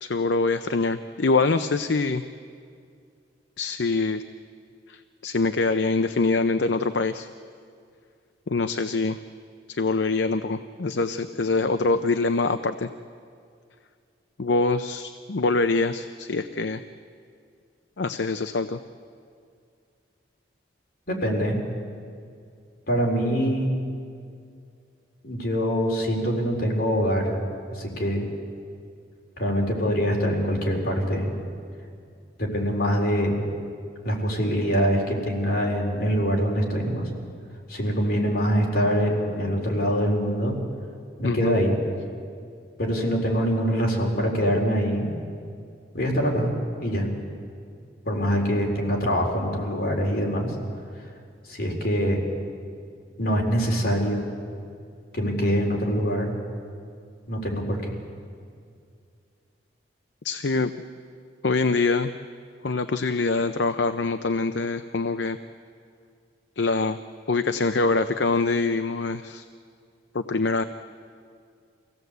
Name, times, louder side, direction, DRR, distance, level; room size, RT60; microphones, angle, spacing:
voice 1, 0.0-2.2 3.6-4.2 4.9-7.3 8.5-9.2 9.7-12.9 14.4-16.8 18.0-18.8 41.2-41.5 60.2-60.7 61.4-62.1 62.6-65.4 66.6-67.0 67.3-69.4 70.1-70.6, left 3 dB, 70° left, 9 dB, 0.7 m, -24 dB
voice 2, 21.1-21.6 22.9-23.7 25.2-27.4 27.7-28.3 29.4-31.3 32.4-33.4 34.0-37.1 37.7-40.6 41.2-41.8 42.8-45.1 45.9-46.5 46.8-47.1 48.1-50.5 51.5-52.2 53.2-54.3 55.1-56.4 57.3-57.9, equal, 55° left, 0 dB, 4.2 m, -24 dB
25.0 x 16.5 x 8.1 m, 2.3 s
head